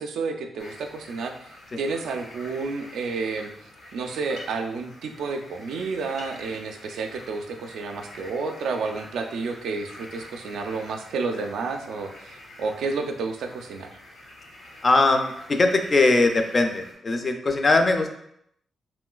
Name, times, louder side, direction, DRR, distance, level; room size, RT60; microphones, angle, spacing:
voice 1, 0.0-3.5 3.9-13.9, right 4 dB, 85° right, 5 dB, 0.3 m, -31 dB
sound 1, 0.6-16.9, left 1 dB, 65° left, 0.7 m, -46 dB
voice 2, 14.8-18.1, left 2 dB, 35° left, 5 dB, 0.3 m, -20 dB
3.0 x 2.9 x 2.3 m, 0.74 s
cardioid pair, 115°, 0 cm